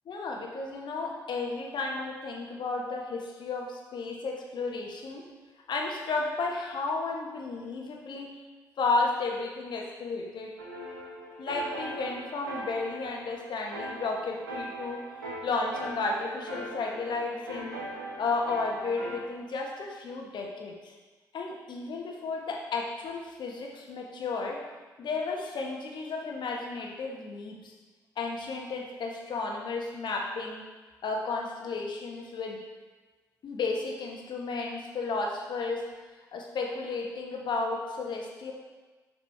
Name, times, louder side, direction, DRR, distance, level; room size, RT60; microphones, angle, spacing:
voice 1, 0.1-5.3 5.7-8.4 8.8-10.6 11.4-15.0 15.4-17.8 18.2-20.9 21.3-24.6 25.0-27.7 28.2-30.6 31.0-32.6 33.4-35.8 36.3-38.5, left 3 dB, 50° left, 0 dB, 1.3 m, -33 dB
sound 1, 10.6-19.2, right 1 dB, 85° right, 1.3 m, -40 dB
6.9 x 6.1 x 4.7 m, 1.3 s
figure-of-eight pair, 45°, 10 cm